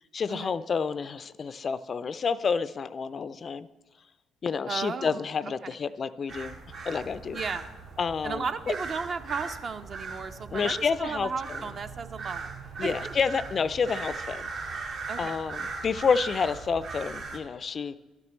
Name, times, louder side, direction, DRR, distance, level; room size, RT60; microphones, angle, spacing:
voice 1, 0.1-3.7 4.4-6.6 6.9-7.4 8.0-8.4 10.5-11.3 12.8-14.5 15.2-18.0, left 5 dB, 45° left, 15 dB, 0.3 m, -29 dB
voice 2, 4.7-5.3 5.6-5.8 7.3-7.7 8.2-12.5 12.8-13.0 15.1-15.3, right 5 dB, 50° right, 8 dB, 0.6 m, -34 dB
sound 1, 6.3-17.4, right 4 dB, 65° right, 1.2 m, -39 dB
12.0 x 8.7 x 3.1 m, 1.3 s
supercardioid pair, 60°, 0 cm